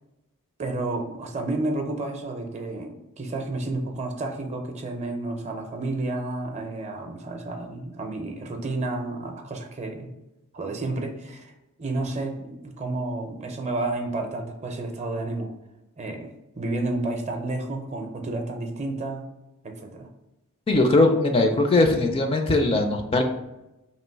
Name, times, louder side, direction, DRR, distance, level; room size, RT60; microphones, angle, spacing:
voice 1, 0.6-10.1 10.5-11.5 11.8-15.5 16.0-19.3 19.6-20.1, right 2 dB, 30° right, 3 dB, 0.5 m, -31 dB
voice 2, 20.7-23.2, left 2 dB, 25° left, 4 dB, 0.4 m, -20 dB
3.0 x 2.9 x 4.4 m, 0.95 s
head